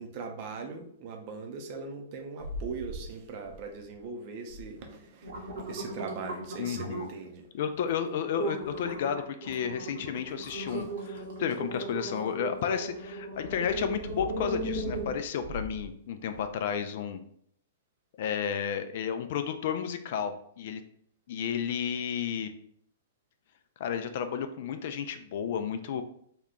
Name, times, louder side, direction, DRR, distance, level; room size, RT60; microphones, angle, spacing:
voice 1, 0.0-7.4 10.7-10.9, right 4 dB, 45° right, 4 dB, 0.6 m, -40 dB
sound 1, 2.4-3.1 3.4-3.9 4.5-4.6 5.0-7.3 7.8-7.9 8.3-15.8 16.3-16.4, right 2 dB, 65° right, 0.9 m, -37 dB
voice 2, 6.6-7.1 7.5-17.2 18.2-20.8 21.3-22.5 23.8-26.0, left 8 dB, 55° left, 9 dB, 0.3 m, -32 dB
2.9 x 2.3 x 3.6 m, 0.66 s
figure-of-eight pair, 110°, 0 cm